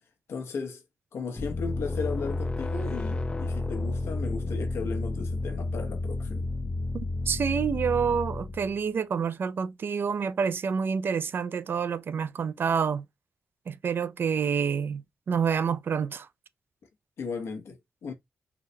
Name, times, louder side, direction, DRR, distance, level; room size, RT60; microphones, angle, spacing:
voice 1, 0.3-0.8 1.1-6.5 17.2-18.1, left 5 dB, 80° left, 0.9 m, -36 dB
sound 1, 1.4-8.8, left 2 dB, 25° left, 0.4 m, -31 dB
voice 2, 6.9-13.0 13.7-16.3, right 6 dB, 60° right, 0.3 m, -28 dB
3.9 x 2.1 x 2.7 m
cardioid pair, 70°, 4 cm